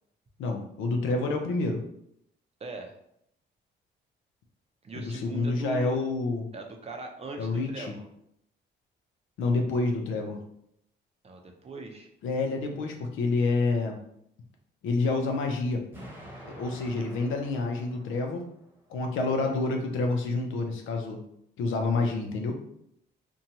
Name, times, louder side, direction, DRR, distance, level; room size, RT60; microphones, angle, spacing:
voice 1, 0.4-1.8 4.9-6.5 7.4-7.9 9.4-10.4 12.2-14.0 14.8-15.8 16.4-18.5 18.9-21.2 21.6-22.6, left 3 dB, 80° left, 3 dB, 0.6 m, -28 dB
voice 2, 2.6-3.0 4.8-5.9 6.5-8.1 11.2-12.1, right 3 dB, 30° right, 2 dB, 0.5 m, -40 dB
Explosion, 15.9-18.9, equal, 10° right, 1.0 m, -47 dB
2.6 x 2.2 x 2.8 m, 0.73 s
cardioid pair, 90°, 20 cm